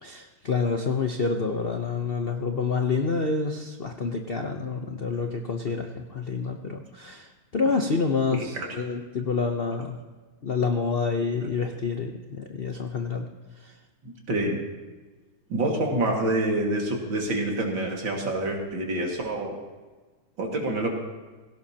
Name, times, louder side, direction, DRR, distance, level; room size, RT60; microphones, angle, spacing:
voice 1, 0.0-10.0 10.4-13.3 13.6-13.7, left 4 dB, 55° left, 4 dB, 0.6 m, -28 dB
voice 2, 8.3-8.8 14.0-14.6 15.5-19.6 20.4-20.9, right 1 dB, 70° right, 0 dB, 2.8 m, -27 dB
17.0 x 17.0 x 2.9 m, 1.3 s
omnidirectional pair, 2.2 m